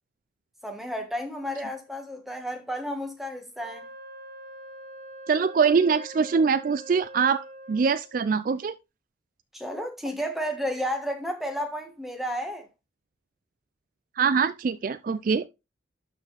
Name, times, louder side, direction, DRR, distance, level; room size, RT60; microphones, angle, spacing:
voice 1, 0.6-3.9 9.5-12.7, equal, ahead, 1.4 m, -32 dB
Wind instrument woodwind instrument, 3.6-8.2, right 1 dB, 60° right, 1.7 m, -44 dB
voice 2, 5.3-8.7 14.2-15.5, right 5 dB, 45° right, 0.3 m, -23 dB
12.0 x 4.4 x 3.3 m
head